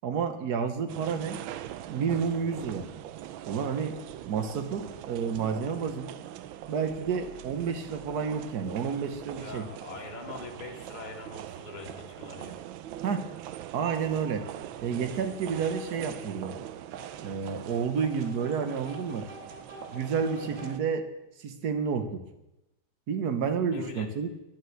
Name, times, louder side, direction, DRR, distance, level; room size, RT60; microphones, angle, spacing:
voice 1, 0.0-1.4 1.9-2.9 3.4-4.0 4.3-6.2 6.7-9.7 13.0-13.3 13.7-14.5 14.8-16.5 17.2-19.3 19.9-21.1 21.4-22.2 23.1-24.3, right 6 dB, 55° right, 9 dB, 1.6 m, -30 dB
sound 1, 0.9-20.8, right 12 dB, 85° right, 1.4 m, -42 dB
voice 2, 9.4-12.6 23.7-24.1, left 4 dB, 25° left, 0 dB, 1.8 m, -42 dB
sound 2, 13.4-13.5 15.5-16.1 16.9-21.2, left 2 dB, 30° right, 2.5 m, -49 dB
11.5 x 9.0 x 7.8 m, 0.93 s
omnidirectional pair, 2.1 m